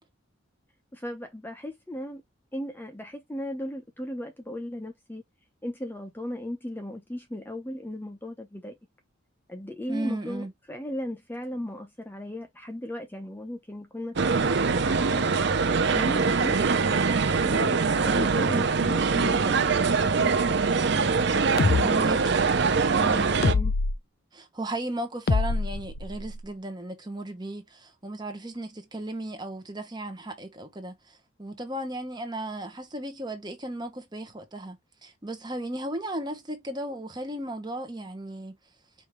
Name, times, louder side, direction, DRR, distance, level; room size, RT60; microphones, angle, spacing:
voice 1, 0.9-2.2 2.5-5.2 5.6-8.8 9.5-15.4 15.9-17.0 17.4-20.6 21.5-22.1 23.4-23.7, left 1 dB, 10° left, 0.7 m, -36 dB
voice 2, 9.9-10.5 21.8-22.4 23.0-23.3 24.3-38.5, right 1 dB, 20° right, 1.1 m, -35 dB
sound 1, 14.2-23.5, right 4 dB, 55° right, 0.6 m, -23 dB
sound 2, 21.6-21.8 23.4-24.0 25.3-26.4, left 4 dB, 50° left, 0.5 m, -24 dB
5.1 x 2.8 x 3.2 m
head